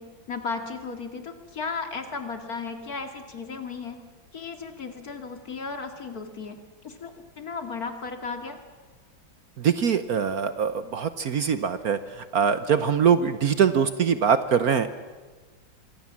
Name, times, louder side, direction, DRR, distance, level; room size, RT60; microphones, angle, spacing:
voice 1, 0.0-4.0 4.3-8.6, left 4 dB, 50° left, 6 dB, 2.7 m, -35 dB
voice 2, 9.6-12.0 12.3-14.9, right 7 dB, 55° right, 12 dB, 1.3 m, -23 dB
26.5 x 24.0 x 7.4 m, 1.4 s
omnidirectional pair, 2.1 m